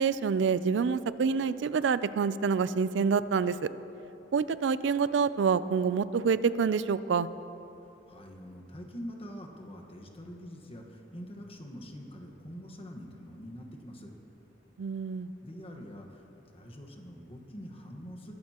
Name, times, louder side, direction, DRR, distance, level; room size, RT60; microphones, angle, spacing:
voice 1, 0.0-3.7 4.3-7.3 14.8-15.3, right 5 dB, 80° right, 15 dB, 0.4 m, -27 dB
voice 2, 7.8-14.1 15.4-18.3, equal, 30° left, 2 dB, 1.3 m, -45 dB
22.0 x 12.0 x 2.9 m, 3.0 s
head